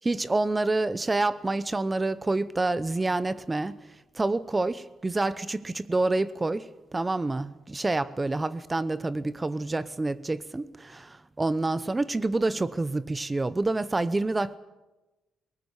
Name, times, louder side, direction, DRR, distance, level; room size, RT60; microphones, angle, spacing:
voice 1, 0.0-3.8 4.1-14.6, right 2 dB, 20° right, 0.9 m, -28 dB
22.0 x 20.0 x 8.3 m
cardioid pair, 90°, 0 cm